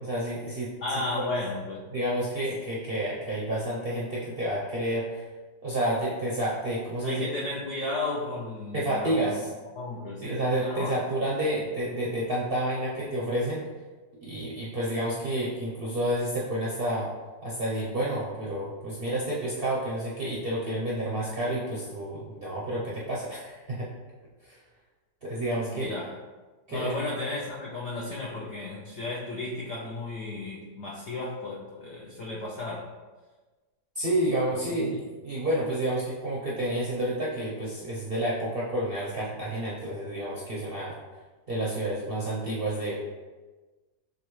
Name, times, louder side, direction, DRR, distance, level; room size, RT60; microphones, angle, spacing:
voice 1, 0.0-0.7 1.1-1.2 1.9-5.2 5.6-7.3 8.7-9.5 10.2-13.6 14.2-17.1 17.4-23.9 24.4-24.6 25.2-25.9 26.7-27.0 34.0-40.9 41.5-43.0, right 1 dB, 55° right, -6 dB, 0.6 m, -29 dB
voice 2, 0.8-1.9 7.0-9.4 9.8-11.0 25.7-26.2 26.7-32.9, left 2 dB, 70° left, -4 dB, 0.6 m, -34 dB
6.7 x 2.4 x 3.1 m, 1.3 s
omnidirectional pair, 1.9 m